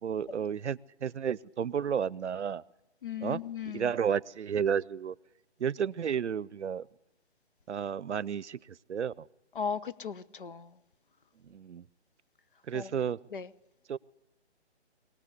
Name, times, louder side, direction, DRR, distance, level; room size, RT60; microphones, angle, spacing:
voice 1, 0.0-2.6 3.2-3.4 3.7-5.2 5.6-6.9 7.7-9.3 11.4-11.9 12.7-13.2 13.9-14.0, right 7 dB, 85° right, 0.7 m, -32 dB
voice 2, 3.0-3.9 9.5-10.8 12.7-12.9 13.3-13.5, left 6 dB, 50° left, 0.9 m, -37 dB
22.5 x 17.5 x 8.2 m
hypercardioid pair, 170°, 34 cm